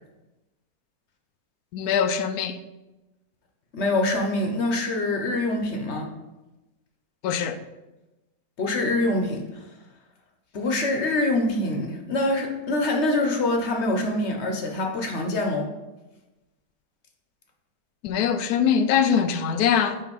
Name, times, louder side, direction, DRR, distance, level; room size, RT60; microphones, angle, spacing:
voice 1, 1.7-2.6 7.2-7.6 18.0-20.0, left 7 dB, 70° left, 1.0 m, -22 dB
voice 2, 3.7-6.1 8.6-9.4 10.5-15.7, left 2 dB, 45° left, 1.1 m, -25 dB
5.7 x 4.9 x 5.4 m
omnidirectional pair, 1.8 m